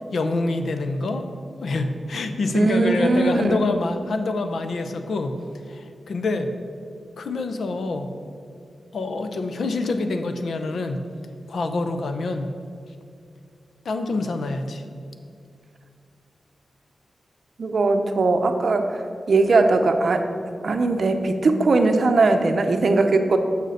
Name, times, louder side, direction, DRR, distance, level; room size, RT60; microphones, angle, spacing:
voice 1, 0.1-1.3 1.6-5.4 5.7-6.5 7.2-8.1 8.9-11.0 11.5-12.5 13.8-14.8, left 3 dB, 65° left, 7 dB, 0.6 m, -26 dB
voice 2, 2.5-3.6 17.6-20.3 20.6-23.4, right 3 dB, 50° right, 6 dB, 0.6 m, -20 dB
6.7 x 6.6 x 6.4 m, 2.3 s
wide cardioid pair, 170°, 0 cm